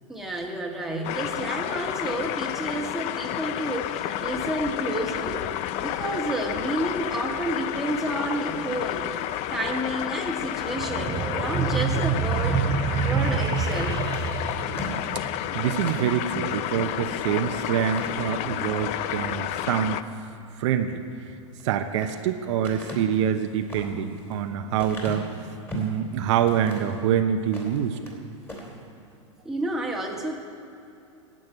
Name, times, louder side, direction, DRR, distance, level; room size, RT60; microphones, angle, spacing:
voice 1, 0.1-5.5 5.8-9.1 9.5-12.6 13.0-14.0 29.4-30.4, right 1 dB, ahead, -1 dB, 1.7 m, -30 dB
sound 1, 1.0-20.0, left 12 dB, 40° left, 0.5 m, -30 dB
sound 2, 10.7-15.7, right 7 dB, 25° right, 0.7 m, -27 dB
sound 3, 13.7-16.1 16.7-16.9 17.2-17.3 17.8-18.7 19.2-19.7 21.5-22.2 22.6-26.0 26.5-27.0 27.4-28.2 28.4-28.7, left 1 dB, 15° left, 3.2 m, -39 dB
voice 2, 15.5-20.0 20.6-21.0 21.6-25.3 25.7-28.0, right 9 dB, 65° right, 6 dB, 0.9 m, -25 dB
11.0 x 7.8 x 8.9 m, 2.7 s
hypercardioid pair, 115°, 16 cm